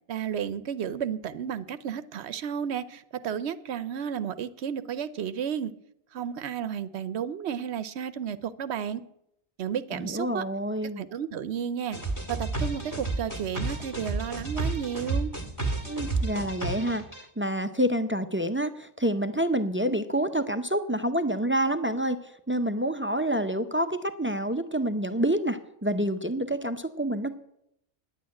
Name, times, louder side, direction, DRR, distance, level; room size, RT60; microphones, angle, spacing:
voice 1, 0.1-5.7 6.1-9.0 9.6-10.5 11.0-12.0 12.3-15.3, right 8 dB, 70° right, 15 dB, 0.9 m, -32 dB
voice 2, 9.9-11.0 15.8-17.0 17.4-22.2 22.5-27.3, right 1 dB, 15° right, 10 dB, 0.4 m, -27 dB
sound 1, 11.9-17.2, right 3 dB, 15° left, 2.0 m, -31 dB
9.9 x 8.6 x 9.5 m, 0.77 s
omnidirectional pair, 1.2 m